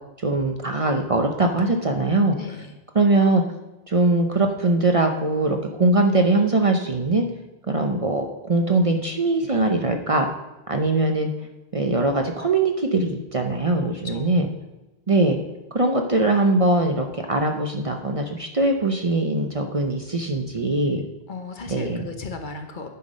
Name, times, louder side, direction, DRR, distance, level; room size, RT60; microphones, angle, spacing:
voice 1, 0.2-2.4 2.9-3.4 3.9-7.2 7.7-10.3 10.7-11.3 11.7-14.5 15.1-15.4 15.7-21.0 21.7-22.0, right 2 dB, 35° right, 4 dB, 0.7 m, -21 dB
voice 2, 2.4-2.7 13.7-14.4 21.3-22.9, left 3 dB, 50° left, 5 dB, 1.0 m, -36 dB
9.4 x 5.9 x 5.1 m, 1.0 s
omnidirectional pair, 1.1 m